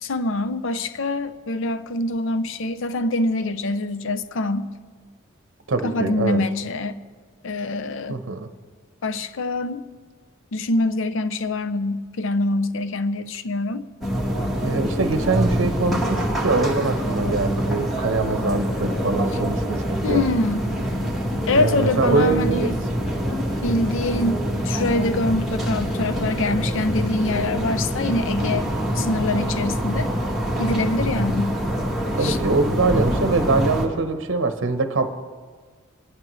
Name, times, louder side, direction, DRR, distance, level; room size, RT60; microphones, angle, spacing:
voice 1, 0.0-4.7 5.8-7.0 7.4-8.2 9.0-9.8 10.5-13.9 20.0-20.7 21.5-22.7 23.6-28.7 28.9-30.1 30.6-31.5 32.2-32.4, left 2 dB, 65° left, 0.6 m, -24 dB
voice 2, 5.7-6.4 8.1-8.5 14.6-20.2 21.5-22.7 32.2-35.1, right 3 dB, 65° right, 0.8 m, -23 dB
sound 1, 14.0-33.9, equal, ahead, 2.0 m, -25 dB
22.0 x 11.5 x 3.1 m
head